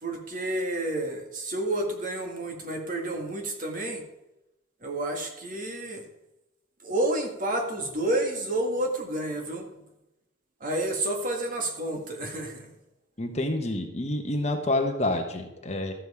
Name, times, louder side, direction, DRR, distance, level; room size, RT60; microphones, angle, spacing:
voice 1, 0.0-4.0 4.8-6.1 6.8-9.7 10.6-12.7, right 1 dB, 40° right, 2 dB, 1.8 m, -30 dB
voice 2, 13.2-15.9, left 1 dB, 35° left, 4 dB, 1.2 m, -28 dB
13.5 x 7.7 x 4.9 m, 0.93 s
head